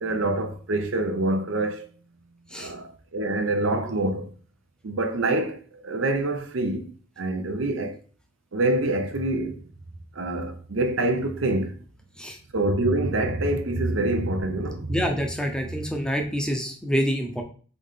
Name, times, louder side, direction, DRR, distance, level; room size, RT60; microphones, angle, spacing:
voice 1, 0.0-1.9 2.5-4.3 4.8-7.9 8.5-9.6 10.1-11.8 12.5-15.0, right 2 dB, 80° right, 0.7 m, -26 dB
voice 2, 14.9-17.4, equal, 5° left, 0.6 m, -27 dB
4.0 x 3.7 x 3.6 m
head